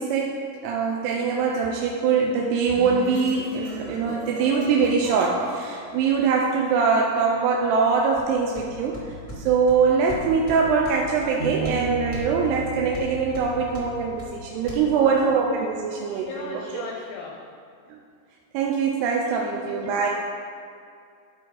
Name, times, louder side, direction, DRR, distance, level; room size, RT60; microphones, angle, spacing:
voice 1, 0.0-16.8 17.9-18.0 18.5-20.1, right 5 dB, 85° right, -1 dB, 2.7 m, -23 dB
sound 1, 2.4-6.7, right 1 dB, 55° right, 2.2 m, -38 dB
sound 2, 8.2-14.8, equal, 25° left, 1.1 m, -39 dB
Bass guitar, 11.4-14.9, right 3 dB, 70° right, 1.7 m, -34 dB
voice 2, 14.9-15.3 16.1-17.5 19.3-20.1, left 5 dB, 85° left, 1 dB, 2.0 m, -38 dB
13.0 x 5.3 x 3.9 m, 2.4 s
omnidirectional pair, 4.7 m